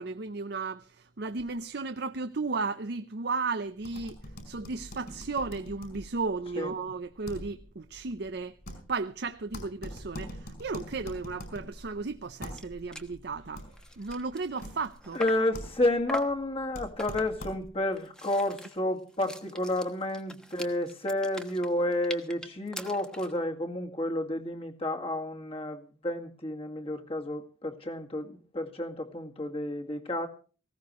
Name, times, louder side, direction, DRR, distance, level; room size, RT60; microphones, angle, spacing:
voice 1, 0.0-4.2 4.5-8.5 8.9-13.6 14.0-15.2, right 4 dB, 55° right, 0.6 m, -34 dB
sound 1, 3.8-17.9, equal, 55° left, 4.9 m, -45 dB
sound 2, 12.2-12.3 12.5-12.7 12.9-13.1 13.6-15.5 16.1-16.4 17.0-17.5 17.9-23.4, equal, 5° left, 1.2 m, -42 dB
voice 2, 15.1-30.3, left 1 dB, 30° left, 2.0 m, -31 dB
19.0 x 16.5 x 3.1 m
head